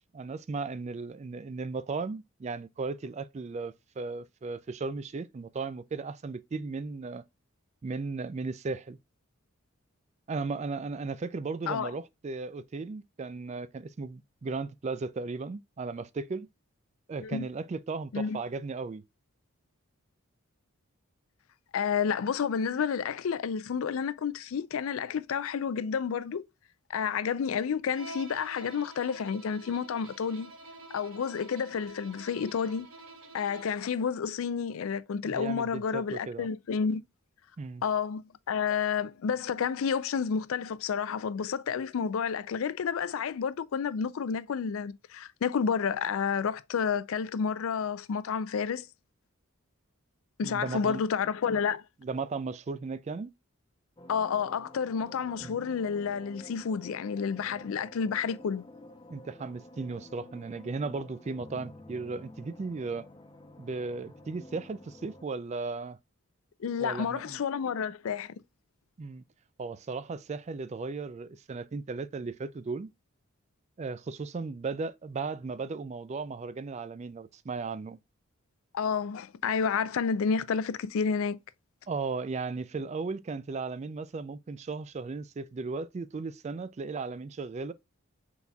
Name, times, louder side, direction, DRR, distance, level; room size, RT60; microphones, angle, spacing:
voice 1, 0.1-7.2 7.8-9.0 10.3-16.5 17.1-19.0 35.2-36.5 37.6-37.8 50.4-51.0 52.0-53.3 55.4-55.5 59.1-63.1 63.6-66.0 66.8-67.4 69.0-69.2 69.6-72.9 73.8-78.0 81.9-87.7, right 4 dB, 30° right, 0.3 m, -36 dB
voice 2, 21.7-26.4 26.9-30.5 30.9-32.9 33.3-37.0 37.8-38.2 38.5-48.9 50.4-51.8 54.1-58.6 66.6-68.3 78.7-81.4, left 6 dB, 70° left, 0.4 m, -30 dB
Bowed string instrument, 27.9-33.9, right 2 dB, 75° right, 1.2 m, -48 dB
sound 1, 54.0-65.2, left 1 dB, 20° left, 0.5 m, -50 dB
5.8 x 4.1 x 2.3 m
head